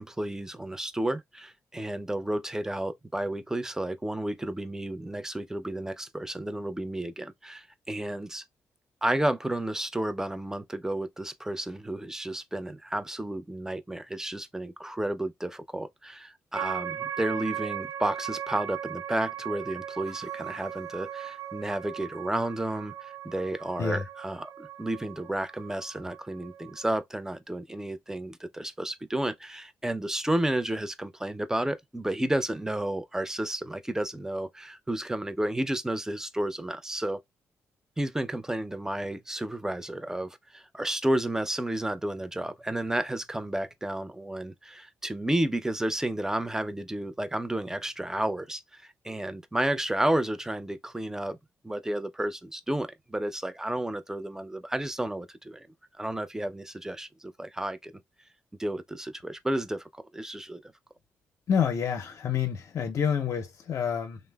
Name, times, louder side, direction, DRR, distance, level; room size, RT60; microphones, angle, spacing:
voice 1, 0.0-8.4 9.0-37.2 38.0-51.4 51.6-55.7 56.0-57.9 58.6-60.6, right 1 dB, 10° right, 0.5 m, -32 dB
sound 1, 16.5-27.0, right 10 dB, 70° right, 0.4 m, -38 dB
voice 2, 61.5-64.2, left 7 dB, 55° left, 0.5 m, -28 dB
3.1 x 2.0 x 2.2 m
hypercardioid pair, 45°, 6 cm